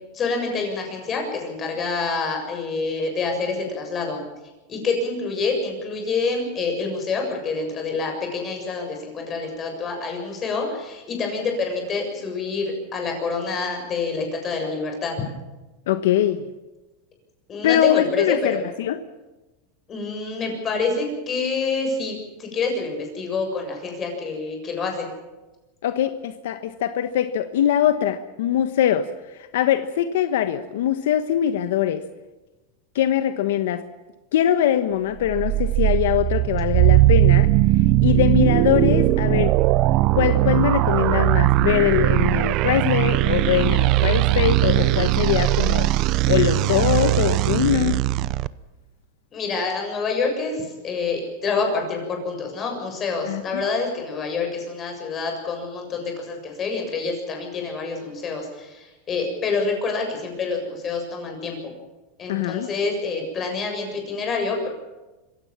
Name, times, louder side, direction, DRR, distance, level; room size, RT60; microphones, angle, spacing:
voice 1, 0.1-4.2 4.7-15.1 17.5-18.6 19.9-25.1 49.3-61.7 62.2-64.7, left 4 dB, 25° left, 3 dB, 7.2 m, -27 dB
voice 2, 15.9-16.4 17.6-19.0 25.8-32.0 32.9-33.8 34.3-37.5 38.0-39.5 40.1-45.9 46.3-48.0 53.2-53.6 62.3-62.7, left 11 dB, 80° left, 10 dB, 1.2 m, -22 dB
sound 1, 35.2-48.5, right 16 dB, 45° right, 0.6 m, -19 dB
25.5 x 16.0 x 7.4 m, 1.1 s
supercardioid pair, 145°, 0 cm